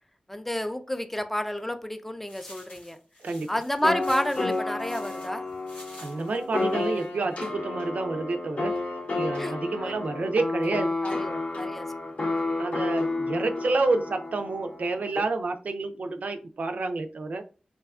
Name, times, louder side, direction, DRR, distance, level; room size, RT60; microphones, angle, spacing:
voice 1, 0.3-3.0 3.5-5.4 9.4-9.5 9.8-9.9 11.0-12.1 12.5-12.7, left 1 dB, 10° left, 0.4 m, -30 dB
sound 1, 2.3-7.5, left 1 dB, 80° left, 1.0 m, -50 dB
voice 2, 3.2-3.6 6.0-8.7 9.1-10.9 12.6-17.4, right 3 dB, 70° right, 0.4 m, -29 dB
sound 2, 3.8-15.2, left 2 dB, 60° left, 0.6 m, -31 dB
2.6 x 2.3 x 2.3 m
cardioid pair, 45°, 3 cm